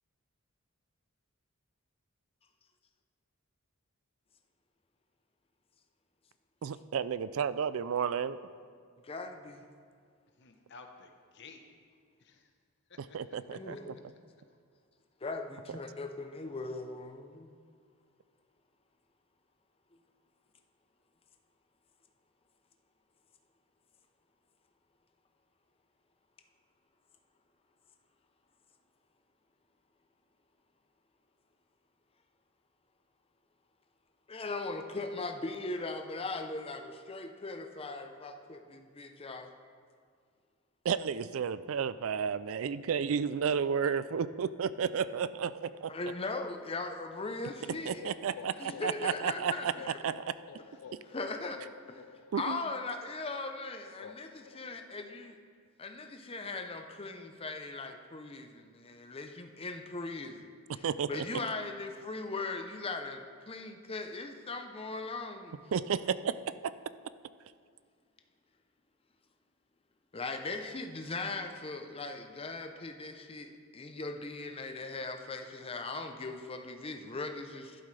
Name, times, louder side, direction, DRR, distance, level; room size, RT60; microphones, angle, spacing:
voice 1, 6.6-8.4 13.1-13.9 40.8-45.9 47.9-49.7 50.0-50.3 52.3-52.6 60.8-61.2 65.7-66.3 66.6-66.7, right 7 dB, 65° right, 15 dB, 0.4 m, -32 dB
voice 2, 9.0-9.6 13.5-14.1 15.2-17.5 19.9-20.0 34.3-39.5 45.9-48.0 48.6-50.0 51.0-51.6 51.9-52.0 52.4-55.4 55.8-65.6 70.1-77.8, left 3 dB, 25° left, 6 dB, 0.6 m, -39 dB
voice 3, 10.4-11.6 12.2-12.5 12.9-13.0 13.5-13.8 48.0-48.9 50.8-51.0, left 4 dB, 55° left, 4 dB, 1.0 m, -55 dB
sound 1, 47.6-55.4, left 7 dB, 70° left, 0.3 m, -51 dB
11.5 x 11.5 x 3.3 m, 2.1 s
head